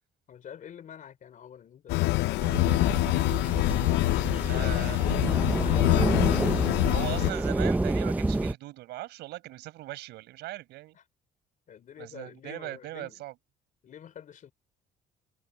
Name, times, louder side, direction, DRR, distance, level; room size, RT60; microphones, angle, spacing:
voice 1, 0.3-3.6 4.2-5.1 5.5-7.5 10.9-11.0 11.7-13.2 13.8-14.5, left 8 dB, 50° left, 3.7 m, -47 dB
sound 1, 1.9-7.3, left 19 dB, 90° left, 0.6 m, -25 dB
sound 2, 2.4-8.5, right 2 dB, 10° right, 0.7 m, -29 dB
voice 2, 4.4-5.1 6.8-11.0 12.0-13.3, right 17 dB, 85° right, 5.1 m, -39 dB
cardioid pair, 110°, 17 cm